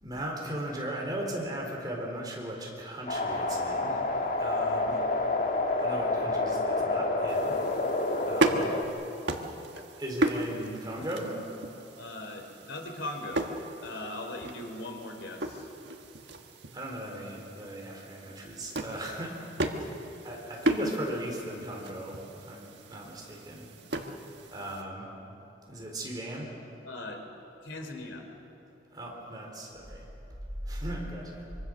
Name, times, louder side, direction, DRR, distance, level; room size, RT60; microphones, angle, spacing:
voice 1, 0.0-4.0 4.4-5.0 5.8-7.6 8.3-8.7 10.0-11.4 16.7-19.4 20.2-23.7 24.5-25.1 25.7-26.5 28.9-30.0 30.7-31.4, right 1 dB, 20° right, -1 dB, 4.1 m, -37 dB
sound 1, 3.1-8.8, left 2 dB, 45° left, 1.5 m, -28 dB
sound 2, 7.3-24.8, right 1 dB, 65° right, 1.6 m, -35 dB
voice 2, 12.0-13.5 13.8-15.7 19.8-19.9 26.8-27.2 27.6-28.2, left 1 dB, 90° left, 4 dB, 3.4 m, -39 dB
25.0 x 24.0 x 6.4 m, 2.9 s
head